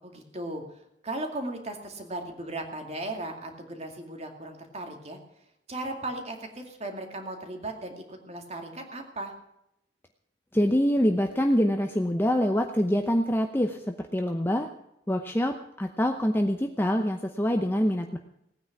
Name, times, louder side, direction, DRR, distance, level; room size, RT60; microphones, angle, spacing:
voice 1, 0.0-5.2 5.7-9.3, right 2 dB, 40° right, 4 dB, 2.4 m, -37 dB
voice 2, 10.5-14.7 15.1-18.2, equal, 15° left, 4 dB, 0.8 m, -25 dB
18.0 x 9.3 x 6.0 m, 0.80 s
head